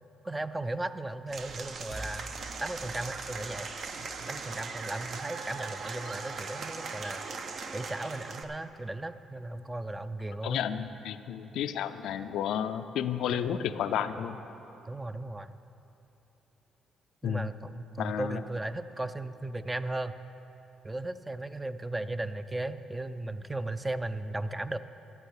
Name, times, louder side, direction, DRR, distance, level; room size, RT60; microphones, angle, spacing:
voice 1, 0.2-2.3 2.6-3.7 4.3-7.2 7.7-10.6 13.3-13.5 14.9-15.6 17.2-20.2 20.8-24.8, right 2 dB, 15° right, 11 dB, 0.5 m, -36 dB
Applause / Crowd, 1.3-8.4, right 4 dB, 55° right, 0.9 m, -39 dB
sound 1, 1.9-5.6, equal, 35° right, 1.1 m, -48 dB
voice 2, 10.4-14.4 17.2-17.5 18.0-18.3, left 9 dB, 85° left, 10 dB, 0.5 m, -32 dB
12.5 x 9.2 x 6.5 m, 3.0 s
cardioid pair, 90°, 0 cm